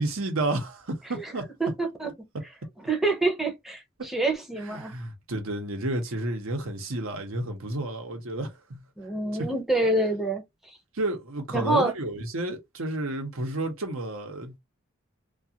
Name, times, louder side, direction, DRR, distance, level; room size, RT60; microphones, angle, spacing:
voice 1, 0.0-1.5 4.6-9.5 10.9-14.6, right 2 dB, 85° right, 0.9 m, -31 dB
voice 2, 1.6-2.1 2.9-4.9 9.0-10.4 11.5-11.9, right 2 dB, ahead, 0.6 m, -26 dB
2.4 x 2.3 x 2.7 m
head